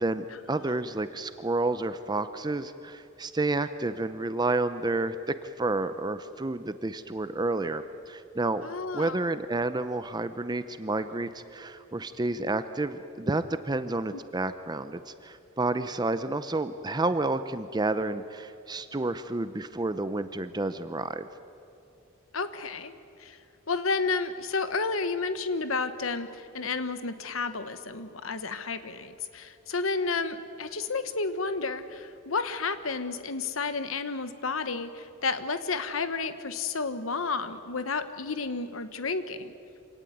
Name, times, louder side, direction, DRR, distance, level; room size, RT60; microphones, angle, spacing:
voice 1, 0.0-8.6 8.9-21.3, right 2 dB, 20° right, 11 dB, 0.7 m, -30 dB
voice 2, 8.6-9.2 14.1-14.2 22.3-22.9 23.2-23.4 23.7-39.5, left 4 dB, 75° left, 11 dB, 1.1 m, -31 dB
27.0 x 18.0 x 9.3 m, 2.6 s
head